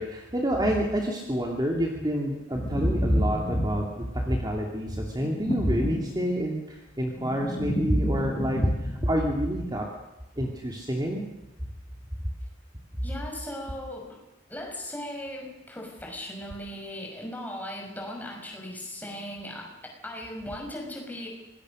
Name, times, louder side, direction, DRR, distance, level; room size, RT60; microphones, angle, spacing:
voice 1, 0.0-9.9 10.4-11.2, equal, 20° right, 0 dB, 2.8 m, -27 dB
sound 1, 2.5-4.1 5.1-6.6 6.9-9.3, left 1 dB, 35° left, 1.3 m, -33 dB
voice 2, 13.0-14.2 14.5-21.3, left 1 dB, 10° left, 0 dB, 5.9 m, -38 dB
26.5 x 20.0 x 6.5 m, 0.95 s
head